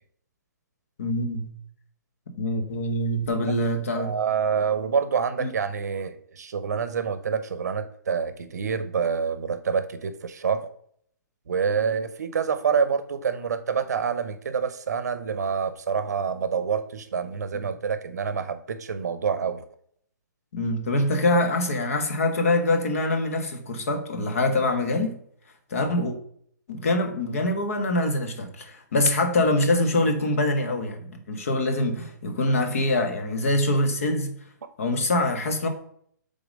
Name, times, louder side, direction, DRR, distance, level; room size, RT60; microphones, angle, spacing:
voice 1, 1.0-1.5 2.3-4.2 5.4-5.5 17.5-17.7 20.5-25.1 25.7-26.2 26.7-34.3 34.8-35.7, left 1 dB, 45° left, 6 dB, 1.2 m, -24 dB
voice 2, 3.9-10.7 11.5-19.6, right 6 dB, 55° right, 12 dB, 0.7 m, -27 dB
6.8 x 3.9 x 5.2 m, 0.65 s
hypercardioid pair, 175°, 10 cm